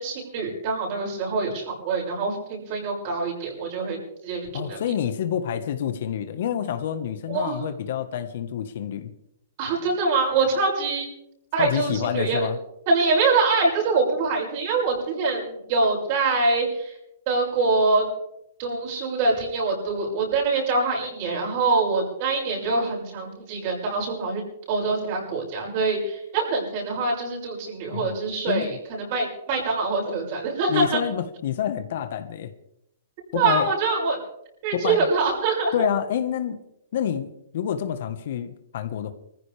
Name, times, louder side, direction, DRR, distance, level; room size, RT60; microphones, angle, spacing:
voice 1, 0.0-4.0 4.2-4.8 7.3-7.6 9.6-11.1 11.5-12.4 12.9-16.9 17.3-18.0 18.6-24.4 24.7-31.0 33.3-34.2 34.6-35.9, right 3 dB, 40° right, -1 dB, 6.5 m, -24 dB
voice 2, 4.5-9.1 11.6-12.6 27.9-28.1 28.5-28.8 30.7-32.5 33.3-33.7 34.7-35.1 35.7-36.6 36.9-39.1, left 9 dB, 55° left, 9 dB, 1.4 m, -28 dB
24.5 x 15.0 x 3.5 m, 0.79 s
hypercardioid pair, 160°, 0 cm